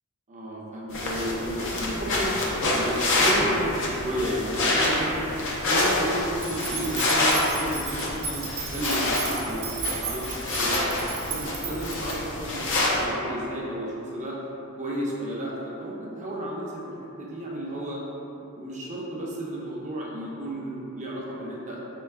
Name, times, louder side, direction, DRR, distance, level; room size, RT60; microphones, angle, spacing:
voice 1, 0.3-2.3 2.6-9.6 10.0-10.8 11.3-14.4 14.8-18.0 18.5-21.8, right 1 dB, 35° right, -5 dB, 0.6 m, -32 dB
sound 1, 0.9-13.0, left 2 dB, 60° left, 0.6 m, -27 dB
sound 2, 6.4-12.2, right 5 dB, 75° right, 0.8 m, -35 dB
4.4 x 3.4 x 2.3 m, 2.9 s
head